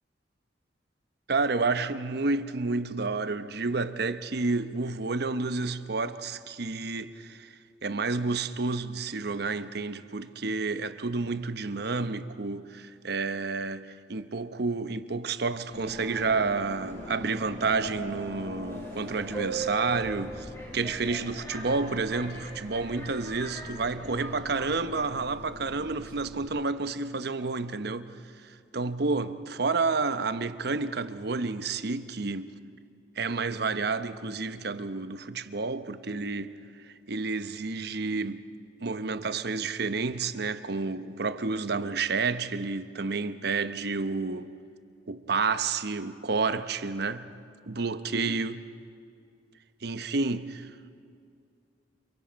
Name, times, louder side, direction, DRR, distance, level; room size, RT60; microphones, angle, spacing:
voice 1, 1.3-32.5 33.2-36.6 36.8-38.5 38.8-44.5 45.1-47.3 47.7-48.7 49.8-50.4, right 4 dB, 65° right, 0.9 m, -30 dB
Subway metro underground, 15.7-26.5, right 1 dB, 15° left, 6.3 m, -40 dB
27.5 x 23.5 x 5.2 m
head